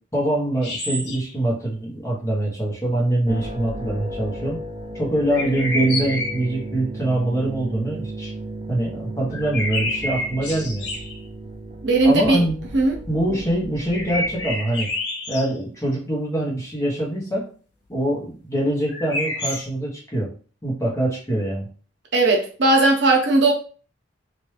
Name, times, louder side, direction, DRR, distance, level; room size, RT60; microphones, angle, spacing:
voice 1, 0.1-4.6 4.9-8.3 8.7-10.8 12.0-12.6 13.1-14.9 15.3-17.5 17.9-20.3 20.6-21.7, right 1 dB, 15° left, 1.1 m, -24 dB
sound 1, 0.6-1.3 5.3-6.6 9.3-11.2 13.9-15.5 18.9-19.6, left 2 dB, 60° left, 1.2 m, -28 dB
sound 2, 3.3-14.5, right 1 dB, 30° right, 0.4 m, -35 dB
voice 2, 11.8-12.4 12.7-13.0 22.1-23.5, right 2 dB, 65° right, 0.8 m, -17 dB
3.1 x 2.6 x 3.2 m
head